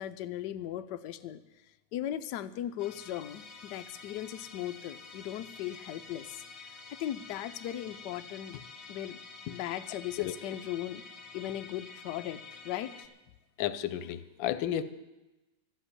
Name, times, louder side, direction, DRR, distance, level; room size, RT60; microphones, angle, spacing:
voice 1, 0.0-1.4 1.9-8.6 8.9-9.2 9.5-11.0 11.3-13.1, left 12 dB, 70° left, 9 dB, 1.2 m, -38 dB
Musical instrument, 2.8-13.1, left 4 dB, 40° left, 1.3 m, -49 dB
voice 2, 13.6-14.8, left 11 dB, 90° left, 14 dB, 1.4 m, -32 dB
12.0 x 8.0 x 9.8 m, 1.0 s
omnidirectional pair, 2.0 m